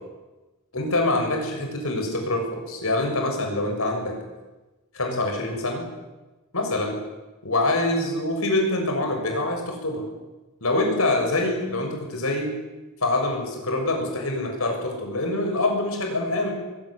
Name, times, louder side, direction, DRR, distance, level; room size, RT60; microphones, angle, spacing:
voice 1, 0.7-4.2 4.9-5.8 6.5-6.9 7.4-10.1 10.6-12.5 13.0-16.5, left 2 dB, 70° left, 3 dB, 6.6 m, -25 dB
22.0 x 17.0 x 10.0 m, 1.1 s
head